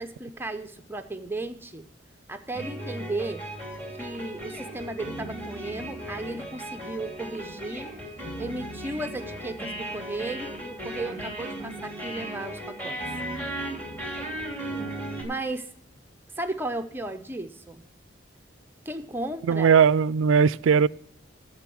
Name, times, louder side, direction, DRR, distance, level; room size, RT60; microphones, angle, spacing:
voice 1, 0.0-1.8 2.3-3.4 3.9-7.9 8.4-13.0 15.2-15.7 16.4-17.8 18.9-19.8, right 2 dB, 10° right, 0.5 m, -35 dB
sound 1, 2.5-15.2, right 1 dB, 10° left, 3.1 m, -36 dB
voice 2, 19.5-20.9, right 6 dB, 80° right, 0.3 m, -19 dB
12.0 x 7.6 x 6.0 m
head